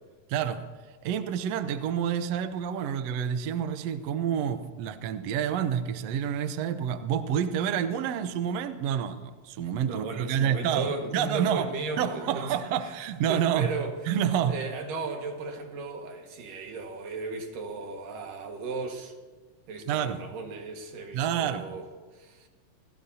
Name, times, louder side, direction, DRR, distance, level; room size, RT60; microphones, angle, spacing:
voice 1, 0.3-0.6 1.0-11.7 12.0-13.7 14.1-14.6 19.9-20.2 21.1-21.7, right 9 dB, 70° right, 10 dB, 1.6 m, -28 dB
voice 2, 9.9-12.6 12.8-12.9 13.3-13.9 14.4-19.1 19.7-21.8 22.1-22.5, right 3 dB, 85° right, 3 dB, 3.4 m, -35 dB
28.0 x 16.5 x 2.8 m, 1.3 s
omnidirectional pair, 3.7 m